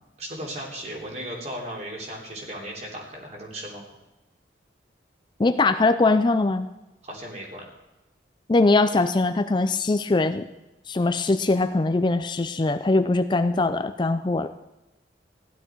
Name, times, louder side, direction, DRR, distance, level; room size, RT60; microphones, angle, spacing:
voice 1, 0.2-3.8 7.0-7.6, right 1 dB, 40° right, -1 dB, 3.3 m, -36 dB
voice 2, 5.4-6.7 8.5-10.5 10.9-14.5, left 3 dB, 25° left, 9 dB, 0.4 m, -21 dB
15.5 x 11.5 x 4.6 m, 1.0 s
head